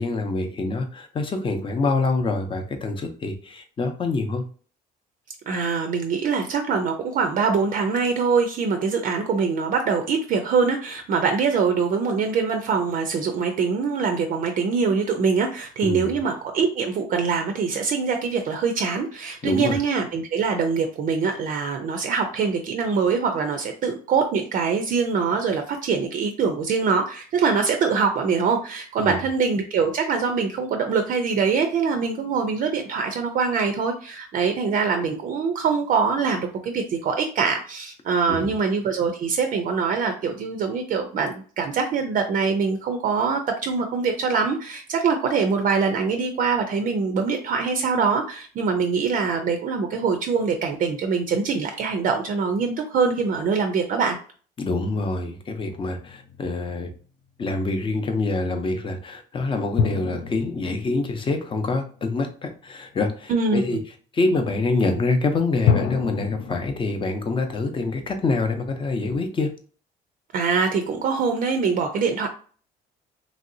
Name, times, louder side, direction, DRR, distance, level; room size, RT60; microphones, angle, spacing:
voice 1, 0.0-4.4 15.8-16.1 19.4-19.8 29.0-29.2 38.3-38.5 54.6-56.9 57.4-63.8 64.1-69.5, left 3 dB, 30° left, 5 dB, 0.6 m, -26 dB
voice 2, 5.5-54.2 63.3-63.8 70.3-72.3, right 5 dB, 50° right, 5 dB, 0.4 m, -23 dB
sound 1, 55.6-56.9 59.8-62.4 65.7-66.6, left 6 dB, 70° left, 0.4 m, -27 dB
3.0 x 2.7 x 2.6 m, 0.42 s
cardioid pair, 110°, 17 cm